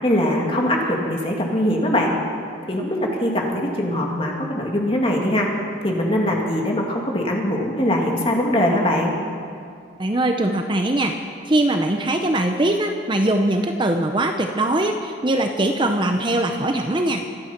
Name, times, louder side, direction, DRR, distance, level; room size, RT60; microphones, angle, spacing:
voice 1, 0.0-2.1 2.7-5.5 5.8-9.1, left 1 dB, 30° left, -1 dB, 2.5 m, -22 dB
voice 2, 10.0-11.1 11.5-17.2, right 1 dB, 25° right, 5 dB, 0.7 m, -21 dB
25.5 x 9.5 x 5.9 m, 2.4 s
head